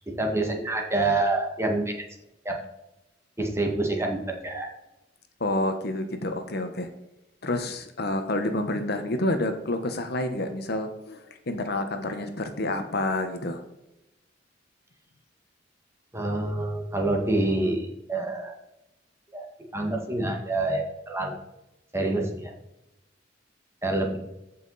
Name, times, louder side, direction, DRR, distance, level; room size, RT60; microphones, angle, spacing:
voice 1, 0.1-1.9 2.4-2.6 3.4-4.7 16.1-18.6 19.3-19.5 19.7-21.3 21.9-22.5 23.8-24.2, right 2 dB, 15° right, 1 dB, 1.9 m, -27 dB
voice 2, 5.4-6.9 7.4-13.6, left 1 dB, 60° left, 7 dB, 1.1 m, -29 dB
15.0 x 5.9 x 4.1 m, 0.90 s
head